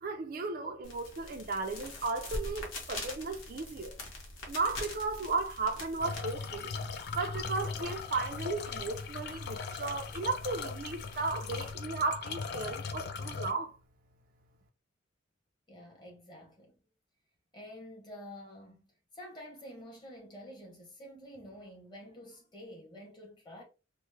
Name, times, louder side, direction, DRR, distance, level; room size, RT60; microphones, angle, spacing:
voice 1, 0.0-4.0 4.5-6.7 7.1-13.8, right 3 dB, 45° right, 0.4 m, -35 dB
sound 1, 0.8-11.7, left 2 dB, 90° left, 1.0 m, -45 dB
sound 2, 6.0-13.5, left 5 dB, 55° left, 0.4 m, -39 dB
voice 2, 15.7-16.8 17.5-18.8 19.1-23.6, equal, 20° left, 1.0 m, -49 dB
3.1 x 2.0 x 3.2 m
head